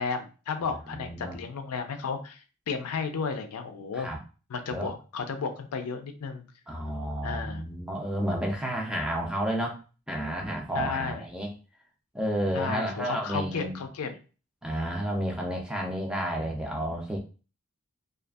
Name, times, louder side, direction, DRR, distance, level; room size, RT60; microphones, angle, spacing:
voice 1, 0.0-2.4 2.7-4.1 4.5-6.5 7.2-7.7 10.7-11.2 12.5-14.2, left 5 dB, 80° left, 7 dB, 0.4 m, -33 dB
voice 2, 1.0-1.4 3.9-4.2 4.7-4.9 6.7-9.8 10.1-11.5 12.1-13.8 14.6-17.2, right 1 dB, 5° right, 1 dB, 0.4 m, -31 dB
2.6 x 2.4 x 2.3 m, 0.35 s
head